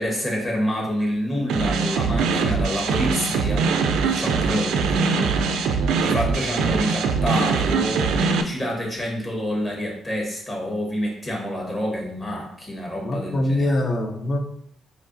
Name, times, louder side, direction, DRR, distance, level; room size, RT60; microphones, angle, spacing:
voice 1, 0.0-3.7 4.0-5.6 6.0-13.8, equal, 25° left, -1 dB, 1.3 m, -28 dB
sound 1, 1.5-8.4, right 5 dB, 85° right, 0.4 m, -22 dB
voice 2, 13.0-14.4, left 1 dB, 40° left, 5 dB, 0.6 m, -23 dB
4.3 x 3.0 x 2.6 m, 0.70 s
cardioid pair, 90°, 0 cm